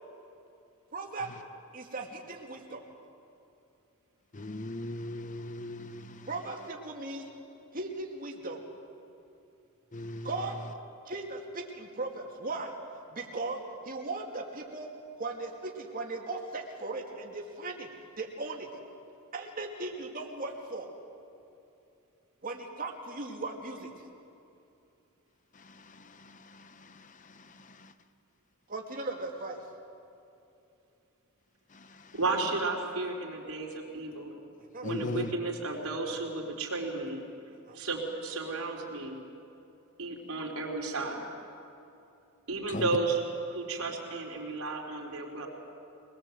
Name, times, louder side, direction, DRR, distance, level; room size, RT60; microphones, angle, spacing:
voice 1, 0.9-1.3 1.7-2.8 6.3-7.2 7.7-8.6 10.2-10.5 11.1-12.7 13.1-13.6 13.8-14.9 15.2-17.9 18.2-18.7 19.3-20.9 22.4-23.9 28.7-29.6 34.7-34.9 37.7-37.8, right 2 dB, 40° right, 1 dB, 2.4 m, -37 dB
voice 2, 4.3-6.3 9.9-10.5 25.5-27.9 31.7-32.2 34.8-35.3 42.7-42.9, left 1 dB, 35° left, 11 dB, 0.8 m, -40 dB
voice 3, 32.1-34.4 34.8-37.2 37.7-39.2 40.0-41.2 42.5-43.2 43.5-45.5, right 3 dB, 80° right, 1 dB, 3.9 m, -33 dB
24.0 x 20.5 x 7.9 m, 2.8 s
head